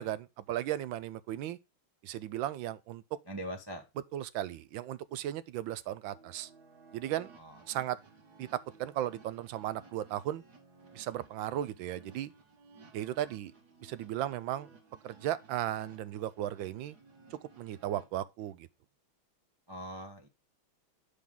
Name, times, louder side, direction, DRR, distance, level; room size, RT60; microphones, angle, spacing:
voice 1, 0.0-1.6 2.0-3.0 4.1-6.5 6.9-7.3 7.7-8.0 8.4-10.4 10.9-12.3 12.9-13.5 13.8-14.7 15.0-17.0 17.3-18.7, right 12 dB, 75° right, 1.2 m, -36 dB
voice 2, 3.3-3.8 7.4-7.6 19.7-20.3, equal, 25° right, 0.5 m, -41 dB
sound 1, 6.1-18.1, right 4 dB, 50° right, 2.3 m, -58 dB
8.3 x 6.0 x 3.7 m
omnidirectional pair, 2.3 m